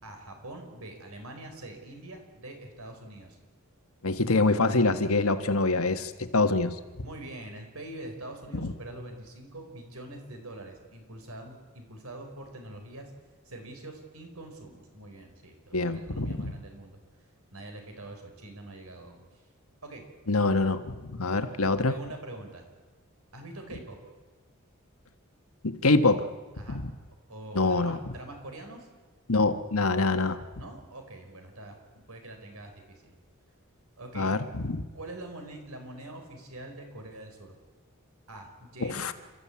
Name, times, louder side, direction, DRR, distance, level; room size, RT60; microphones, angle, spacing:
voice 1, 0.0-3.4 7.0-13.1 13.4-17.0 17.5-19.2 19.8-20.0 21.9-22.7 23.3-24.0 26.5-26.8 27.3-28.9 30.5-31.8 32.1-33.1 34.0-34.3 34.9-37.5 38.3-39.0, right 1 dB, 85° right, 4 dB, 4.7 m, -44 dB
voice 2, 4.0-7.1 8.6-8.7 15.7-16.6 20.3-21.9 25.6-26.3 26.7-26.9 27.5-28.0 29.3-30.4 34.1-34.9 38.8-39.1, left 3 dB, 80° left, 9 dB, 1.4 m, -25 dB
29.5 x 13.5 x 8.6 m, 1.3 s
head